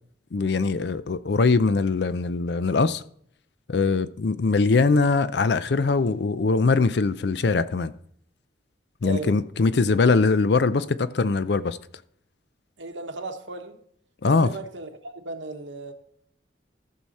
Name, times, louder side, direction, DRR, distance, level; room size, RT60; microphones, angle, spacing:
voice 1, 0.3-3.0 3.7-7.9 9.0-11.8 14.2-14.5, left 4 dB, 60° left, 0.5 m, -22 dB
voice 2, 9.0-9.4 12.8-13.8 14.2-15.9, right 3 dB, 80° right, 1.2 m, -36 dB
14.0 x 6.3 x 4.2 m
head